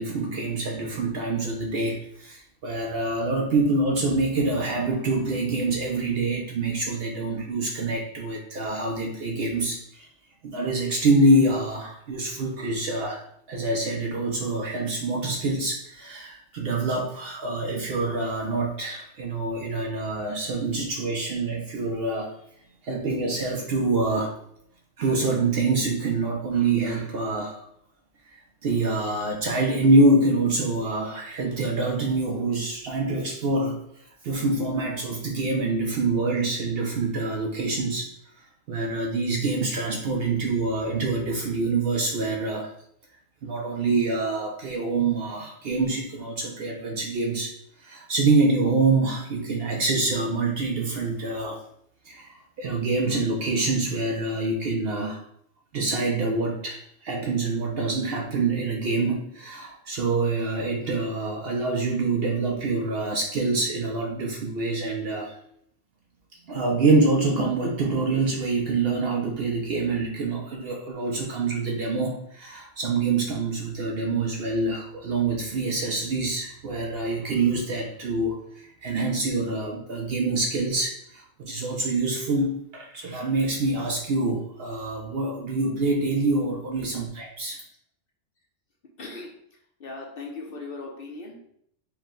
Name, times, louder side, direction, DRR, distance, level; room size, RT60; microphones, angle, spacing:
voice 1, 0.0-10.1 10.4-22.3 22.8-24.4 25.0-27.6 28.3-33.8 34.2-38.1 38.7-42.7 43.4-47.5 47.8-51.6 52.0-55.2 55.7-65.4 66.5-87.6, right 3 dB, 60° right, 0 dB, 0.7 m, -26 dB
voice 2, 89.0-89.3 89.8-91.5, left 3 dB, 55° left, -1 dB, 0.7 m, -38 dB
4.6 x 2.1 x 3.6 m, 0.70 s
omnidirectional pair, 1.4 m